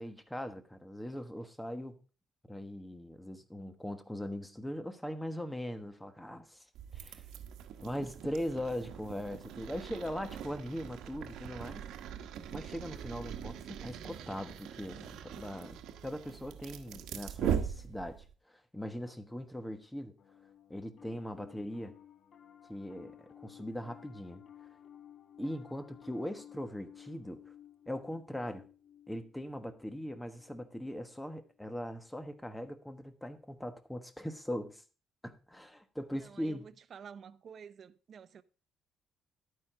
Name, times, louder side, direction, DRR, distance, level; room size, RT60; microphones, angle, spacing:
voice 1, 0.0-2.0 2.5-6.7 6.9-7.2 7.8-11.8 12.5-20.2 20.7-21.9 22.7-24.4 25.4-27.4 27.9-28.6 29.1-34.8 35.2-36.7, equal, 5° left, 1.2 m, -40 dB
sound 1, 6.7-18.3, right 9 dB, 85° right, 1.2 m, -41 dB
Piano, 20.2-31.7, left 10 dB, 60° left, 1.2 m, -56 dB
voice 2, 36.1-38.4, right 7 dB, 50° right, 0.6 m, -51 dB
11.0 x 9.3 x 3.7 m
cardioid pair, 120°, 0 cm